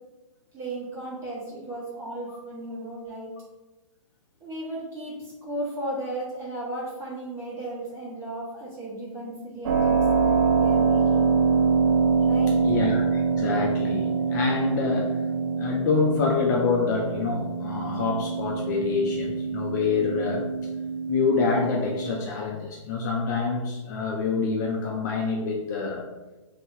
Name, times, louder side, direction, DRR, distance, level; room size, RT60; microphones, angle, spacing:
voice 1, 0.5-3.3 4.4-11.3 12.2-12.6, right 1 dB, 15° right, -7 dB, 1.5 m, -35 dB
Keyboard (musical), 9.6-22.2, right 5 dB, 50° right, 0.7 m, -25 dB
voice 2, 12.6-15.2 15.6-20.4 21.1-26.1, left 5 dB, 35° left, 0 dB, 0.5 m, -26 dB
3.4 x 2.7 x 4.3 m, 1.2 s
hypercardioid pair, 150°, 17 cm